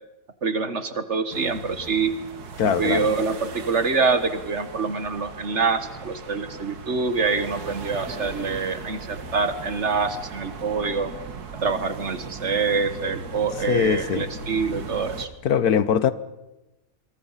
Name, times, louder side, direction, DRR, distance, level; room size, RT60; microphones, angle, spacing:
voice 1, 0.4-2.1 2.6-11.1 11.6-15.3, right 4 dB, 50° right, 1.7 m, -25 dB
sound 1, 1.3-15.3, right 4 dB, 80° right, 2.1 m, -38 dB
voice 2, 2.6-3.1 13.7-14.3 15.4-16.1, left 8 dB, 75° left, 1.5 m, -21 dB
27.5 x 22.5 x 5.7 m
omnidirectional pair, 1.6 m